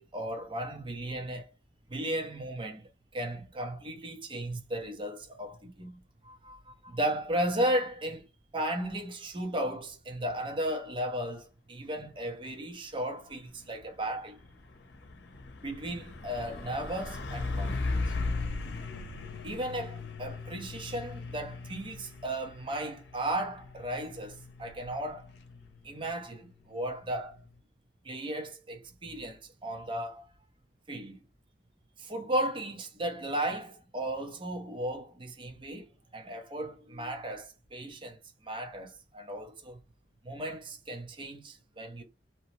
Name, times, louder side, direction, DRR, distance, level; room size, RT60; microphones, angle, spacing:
voice 1, 0.0-1.5 1.9-8.3 8.5-14.4 15.6-18.1 19.4-25.3 25.8-27.4 28.0-30.3 30.9-31.2 32.0-39.8 40.2-42.0, right 1 dB, 30° right, 0.6 m, -35 dB
Truck, 13.3-27.6, left 3 dB, 80° left, 0.7 m, -38 dB
2.8 x 2.0 x 3.0 m
head